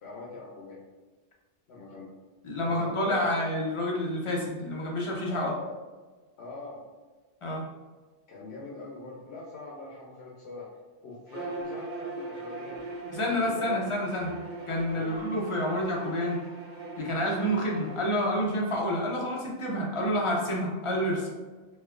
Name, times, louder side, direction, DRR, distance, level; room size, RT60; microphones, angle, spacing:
voice 1, 0.0-0.8 1.7-2.1 2.6-3.4 5.3-5.8 6.4-6.8 8.3-10.7 11.0-12.8 13.1-13.8 14.9-15.1, left 3 dB, 80° left, -4 dB, 0.9 m, -41 dB
voice 2, 2.4-5.5 7.4-7.7 13.1-14.3 14.7-16.4 17.0-21.2, equal, 40° left, -2 dB, 0.5 m, -28 dB
Bowed string instrument, 11.3-18.0, right 3 dB, 50° right, 0.7 m, -40 dB
4.2 x 2.2 x 2.4 m, 1.3 s
omnidirectional pair, 1.1 m